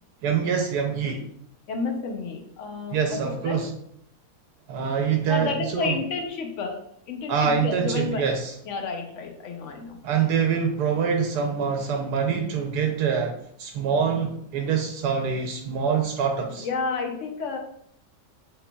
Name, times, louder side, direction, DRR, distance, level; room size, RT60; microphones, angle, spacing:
voice 1, 0.2-1.2 2.9-3.7 4.7-5.9 7.3-8.5 10.0-13.3 13.6-16.7, right 6 dB, 75° right, 4 dB, 1.1 m, -25 dB
voice 2, 1.7-3.7 5.3-6.8 7.1-8.3 8.7-10.0 16.6-17.6, left 4 dB, 65° left, 4 dB, 0.8 m, -31 dB
5.5 x 3.8 x 2.2 m, 0.70 s
omnidirectional pair, 1.8 m